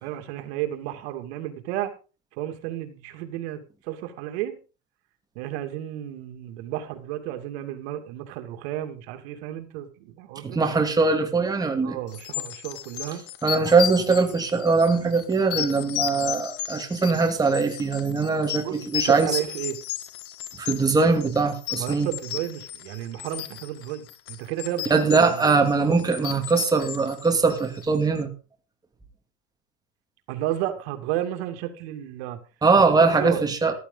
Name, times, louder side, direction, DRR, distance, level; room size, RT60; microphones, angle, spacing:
voice 1, 0.0-1.9 2.4-4.6 5.4-10.6 11.8-13.2 18.6-18.8 19.0-19.8 21.8-25.6 30.3-32.4 33.0-33.4, right 13 dB, 90° right, 6 dB, 2.6 m, -32 dB
voice 2, 10.4-12.0 13.4-19.3 20.6-22.1 24.9-28.3 32.6-33.7, right 4 dB, 10° right, 4 dB, 2.3 m, -21 dB
sound 1, 12.1-28.0, left 12 dB, 50° left, 1.7 m, -34 dB
14.5 x 13.5 x 4.0 m, 0.34 s
cardioid pair, 155°, 31 cm